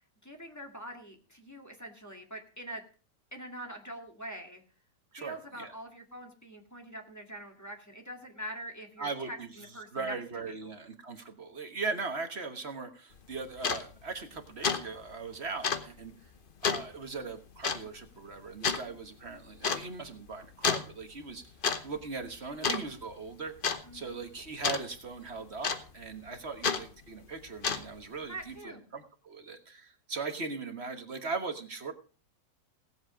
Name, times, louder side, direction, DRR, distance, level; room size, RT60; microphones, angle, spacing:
voice 1, 0.2-2.8 3.3-4.6 5.2-10.2 10.5-10.7 18.7-18.9 23.8-24.2 28.3-28.9, right 1 dB, 10° left, 1 dB, 1.9 m, -44 dB
voice 2, 5.1-5.7 9.0-9.5 9.9-16.1 16.6-21.4 21.8-23.5 23.9-31.9, right 4 dB, 40° right, 6 dB, 1.4 m, -39 dB
sound 1, 13.2-13.3 13.6-13.8 14.2-14.4 14.6-14.8 15.1-15.2 15.6-15.9 16.6-16.9 17.6-17.8 18.6-18.8 19.6-19.8 20.6-20.9 21.4-21.8 22.1-22.3 22.6-23.1 23.6-23.8 24.6-24.8 25.6-26.1 26.6-26.8 27.5-28.0, left 5 dB, 40° left, 0.9 m, -29 dB
17.5 x 7.9 x 5.0 m, 0.37 s
omnidirectional pair, 1.9 m